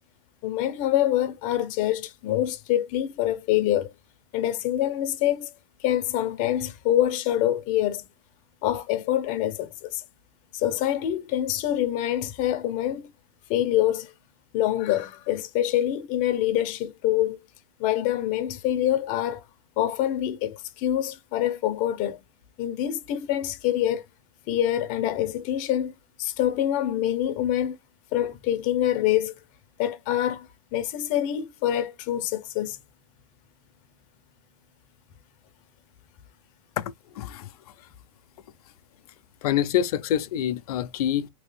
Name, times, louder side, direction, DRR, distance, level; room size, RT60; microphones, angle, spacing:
voice 1, 0.4-3.9 4.3-5.5 5.8-8.1 8.6-10.0 10.5-13.1 13.5-14.1 14.5-17.4 17.8-19.4 19.8-22.2 22.6-24.0 24.5-25.9 26.2-27.8 28.1-29.3 29.8-32.8, left 12 dB, 45° left, 1.0 m, -25 dB
voice 2, 36.8-37.5 39.4-41.3, left 10 dB, 75° left, 0.7 m, -26 dB
3.3 x 3.2 x 3.3 m
supercardioid pair, 135°, 19 cm